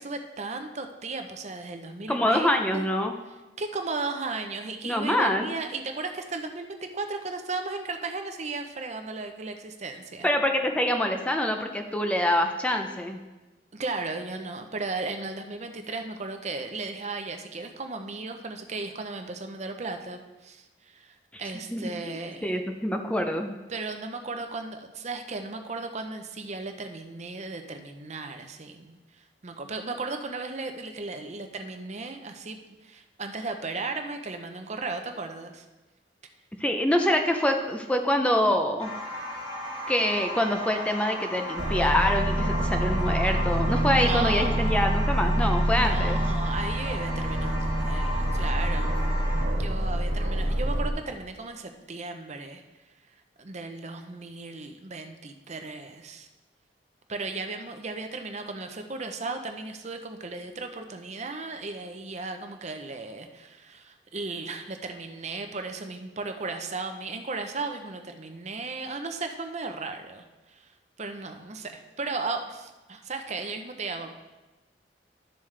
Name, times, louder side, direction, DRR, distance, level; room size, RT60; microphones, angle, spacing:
voice 1, 0.0-2.9 3.6-10.3 13.7-22.6 23.7-35.6 43.9-44.7 45.8-48.9 49.4-52.6 53.4-56.3 57.1-70.7 71.0-74.1, right 3 dB, 40° right, 6 dB, 0.7 m, -35 dB
voice 2, 2.1-3.1 4.9-5.5 10.2-13.2 21.3-21.4 21.7-22.2 22.4-23.6 36.6-38.9 39.9-46.2, left 1 dB, 5° left, 4 dB, 0.5 m, -25 dB
sound 1, 38.8-49.4, equal, 30° left, 2.5 m, -35 dB
Aircraft, 41.6-50.9, right 1 dB, 90° right, 1.4 m, -26 dB
12.0 x 7.3 x 3.3 m, 1.1 s
head